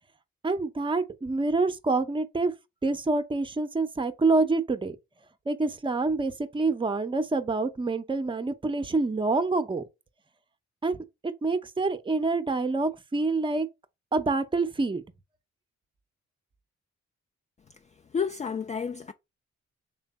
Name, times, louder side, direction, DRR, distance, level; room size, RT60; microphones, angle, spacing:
voice 1, 0.4-2.5 2.8-5.0 5.5-9.8 10.8-11.0 11.4-13.7 14.1-15.0, right 3 dB, 15° right, 0.6 m, -26 dB
voice 2, 18.1-19.1, left 6 dB, 25° left, 0.3 m, -30 dB
3.2 x 2.2 x 4.0 m
supercardioid pair, 55°, 30 cm